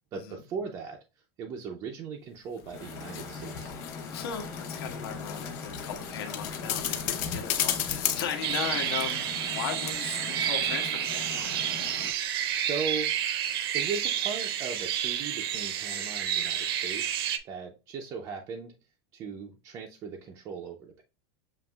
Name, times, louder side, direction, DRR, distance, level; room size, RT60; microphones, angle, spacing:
voice 1, 0.1-1.0 1.4-3.7 12.5-13.1 13.7-18.7 19.1-21.0, right 5 dB, 20° right, 0.4 m, -38 dB
sound 1, 2.6-9.6 9.9-10.0, left 10 dB, 40° left, 0.6 m, -35 dB
sound 2, 2.7-12.1, left 4 dB, 20° left, 1.0 m, -40 dB
voice 2, 4.1-11.9, left 8 dB, 70° left, 1.2 m, -37 dB
sound 3, 8.4-17.4, right 10 dB, 65° right, 0.7 m, -30 dB
6.9 x 2.8 x 2.3 m
supercardioid pair, 175°, 13 cm